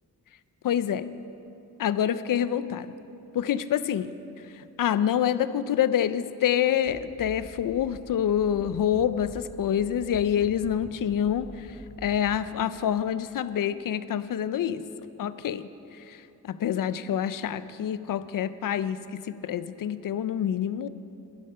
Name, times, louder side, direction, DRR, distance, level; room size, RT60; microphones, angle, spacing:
voice 1, 0.6-1.1 1.8-2.9 3.3-4.1 4.6-11.7 12.0-14.8 15.2-15.6 16.1-16.2 16.4-20.9, left 9 dB, 60° left, 14 dB, 0.5 m, -27 dB
sound 1, 6.9-12.4, equal, 10° right, 0.9 m, -47 dB
13.5 x 12.5 x 5.5 m, 2.8 s
wide cardioid pair, 180°, 37 cm